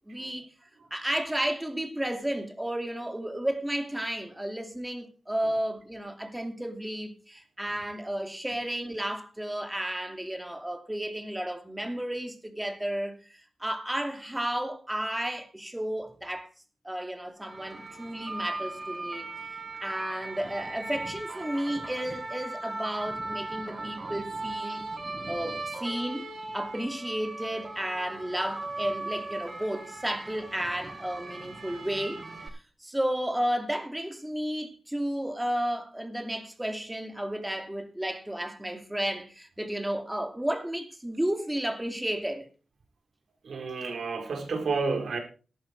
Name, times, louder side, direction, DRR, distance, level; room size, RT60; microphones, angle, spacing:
voice 1, 0.1-0.5 0.9-16.5 16.8-24.8 25.3-26.3 26.5-42.5, right 1 dB, 10° right, 2.7 m, -33 dB
sound 1, 17.4-32.5, right 2 dB, 40° right, 6.3 m, -38 dB
voice 2, 43.4-45.2, right 4 dB, 70° right, 4.2 m, -30 dB
13.5 x 12.0 x 4.7 m
wide cardioid pair, 90°, 0 cm